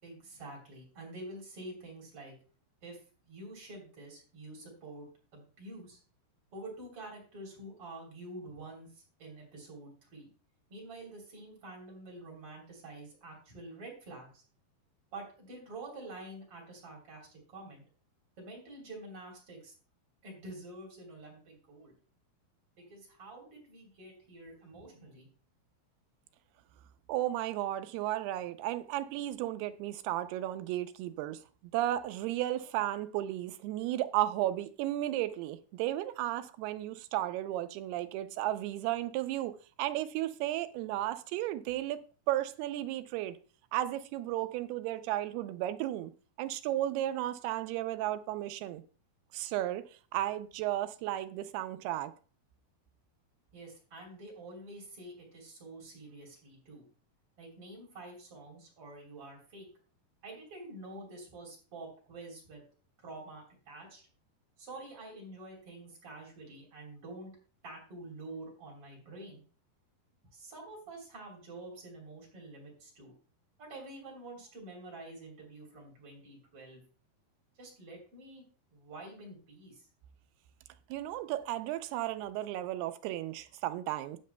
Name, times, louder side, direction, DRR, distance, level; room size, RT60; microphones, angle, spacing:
voice 1, 0.0-2.3 2.8-3.0 3.2-6.0 6.5-10.3 10.7-14.4 15.1-17.8 18.4-19.7 20.2-21.9 22.8-25.3 53.5-56.8 57.4-59.7 60.2-62.6 63.0-64.0 64.6-67.3 67.6-69.4 70.3-73.1 73.6-76.8 77.6-78.4 78.7-79.9, right 2 dB, 35° right, 4.1 m, -48 dB
voice 2, 27.1-31.4 31.7-39.5 39.8-42.0 42.3-43.4 43.7-46.1 46.4-48.8 49.3-49.8 50.1-52.1 80.9-84.2, right 14 dB, 85° right, 2.6 m, -34 dB
12.5 x 9.4 x 2.2 m
omnidirectional pair, 4.5 m